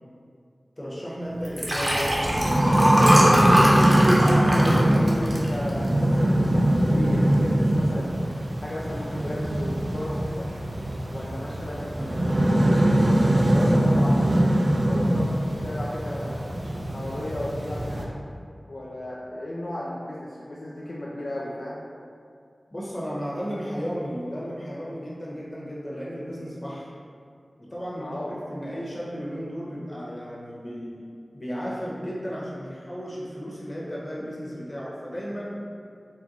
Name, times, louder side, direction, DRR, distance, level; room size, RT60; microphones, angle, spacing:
voice 1, 0.8-3.6 22.7-26.9 27.6-31.0 31.3-35.6, equal, 35° left, -6 dB, 1.1 m, -34 dB
Liquid, 1.4-6.1 6.6-6.8 7.1-7.2, equal, 35° right, 0.9 m, -21 dB
sound 1, 1.7-18.0, right 1 dB, 65° right, 0.5 m, -22 dB
voice 2, 4.4-8.1 8.6-10.5 11.1-12.8 13.5-14.3 14.8-16.6 16.9-18.1 18.7-21.8 28.0-28.4, left 1 dB, 65° left, -6 dB, 0.4 m, -35 dB
4.3 x 2.2 x 3.9 m, 2.3 s
cardioid pair, 40°, 0 cm